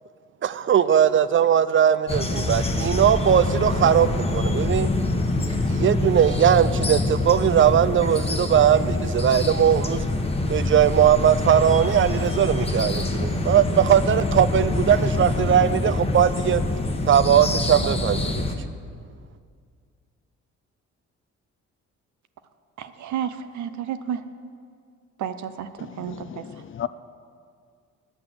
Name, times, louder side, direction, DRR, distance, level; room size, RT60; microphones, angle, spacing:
voice 1, 0.4-4.9 5.4-10.0 10.5-16.6 17.1-18.4, right 9 dB, 40° right, 14 dB, 0.5 m, -19 dB
sound 1, 2.1-18.6, left 2 dB, 20° left, 1.1 m, -25 dB
voice 2, 22.8-24.2 25.2-26.4, right 9 dB, 70° right, 11 dB, 0.8 m, -31 dB
voice 3, 25.8-26.9, left 10 dB, 45° left, 14 dB, 0.5 m, -35 dB
10.0 x 8.3 x 7.7 m, 2.1 s
cardioid pair, 90°, 30 cm